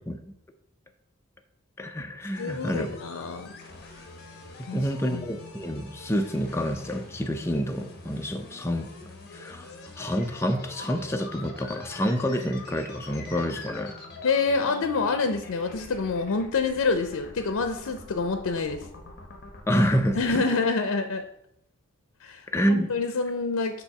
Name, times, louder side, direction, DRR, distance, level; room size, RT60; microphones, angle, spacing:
voice 1, 1.8-2.9 4.7-8.9 9.3-13.9 19.7-20.4 22.5-22.9, equal, 10° left, 5 dB, 0.5 m, -28 dB
sound 1, 2.3-20.4, left 2 dB, 50° left, 1.0 m, -45 dB
voice 2, 2.4-3.5 4.7-4.8 5.1-5.4 14.2-18.9 20.2-21.3 22.2-23.8, left 4 dB, 85° left, 7 dB, 0.5 m, -27 dB
6.9 x 2.7 x 5.7 m, 0.77 s
head